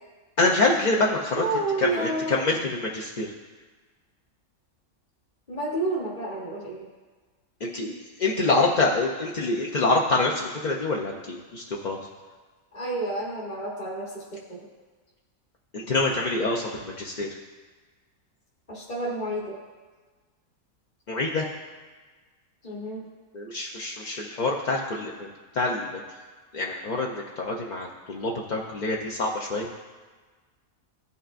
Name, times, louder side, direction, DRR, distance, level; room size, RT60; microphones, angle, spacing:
voice 1, 0.4-1.4 1.8-3.3 7.6-12.0 15.7-17.4 21.1-21.5 23.3-26.0 26.5-29.7, left 2 dB, 50° left, -1 dB, 0.5 m, -26 dB
voice 2, 1.3-2.6 5.5-6.9 12.7-14.7 18.7-19.6 22.6-23.0, right 2 dB, 30° left, -6 dB, 1.3 m, -30 dB
15.5 x 5.5 x 2.5 m, 1.4 s
omnidirectional pair, 1.5 m